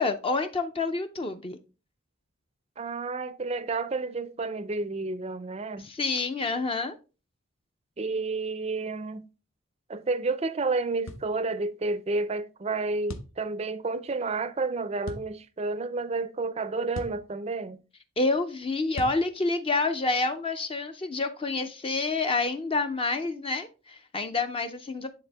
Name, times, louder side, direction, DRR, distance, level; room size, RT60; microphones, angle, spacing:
voice 1, 0.0-1.6 5.8-6.9 18.2-25.1, left 3 dB, 25° left, 0.4 m, -28 dB
voice 2, 2.8-5.9 8.0-9.3 9.9-17.8, right 3 dB, 30° right, 0.4 m, -30 dB
sound 1, 11.1-11.3 13.1-13.4 15.0-15.3 16.9-17.2 19.0-19.2, equal, 70° left, 0.9 m, -38 dB
9.7 x 4.1 x 3.4 m
head